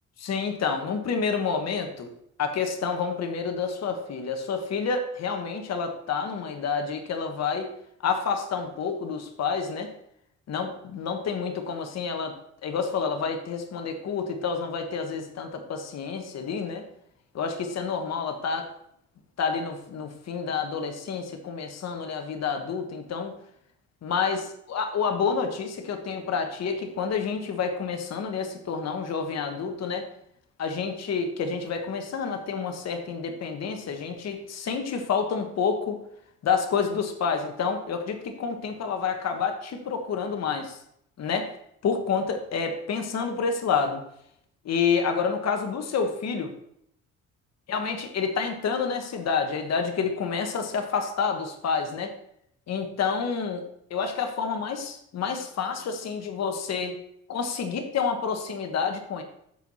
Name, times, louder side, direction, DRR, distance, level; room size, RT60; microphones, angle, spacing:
voice 1, 0.2-2.1 2.4-7.7 8.0-9.9 10.5-12.3 12.6-16.8 17.3-18.7 19.4-23.3 24.0-30.1 30.6-36.0 36.4-40.8 41.2-41.5 41.8-44.0 44.6-46.5 47.7-52.1 52.7-53.6 53.9-57.0 57.3-59.2, left 5 dB, 60° left, 5 dB, 1.4 m, -29 dB
13.0 x 4.8 x 4.2 m, 0.72 s
cardioid pair, 90°, 30 cm